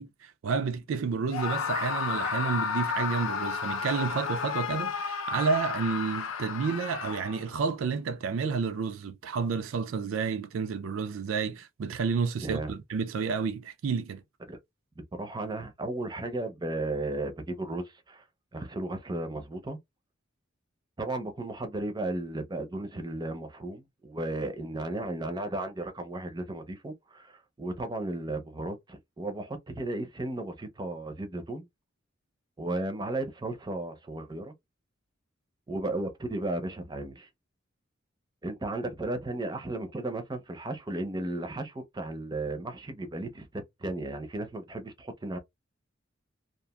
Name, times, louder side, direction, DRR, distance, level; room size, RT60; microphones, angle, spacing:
voice 1, 0.0-14.2, right 5 dB, 85° right, 0.4 m, -30 dB
Screaming, 1.3-7.6, left 6 dB, 80° left, 0.5 m, -32 dB
voice 2, 12.4-12.7 14.5-14.6 15.1-18.2 18.5-19.8 21.0-31.7 32.6-34.5 35.7-37.3 38.4-45.4, right 2 dB, 20° right, 0.5 m, -35 dB
2.9 x 2.4 x 2.3 m
head